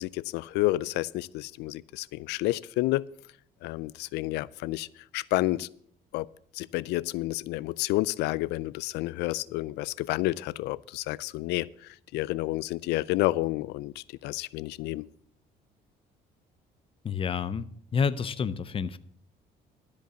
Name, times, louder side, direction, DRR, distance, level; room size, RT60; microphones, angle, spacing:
voice 1, 0.0-3.1 3.6-4.9 5.1-5.7 6.1-6.3 6.5-15.1, left 18 dB, 85° left, 0.4 m, -30 dB
voice 2, 17.0-19.0, left 6 dB, 30° left, 0.6 m, -29 dB
12.5 x 5.2 x 8.0 m
cardioid pair, 110°, 17 cm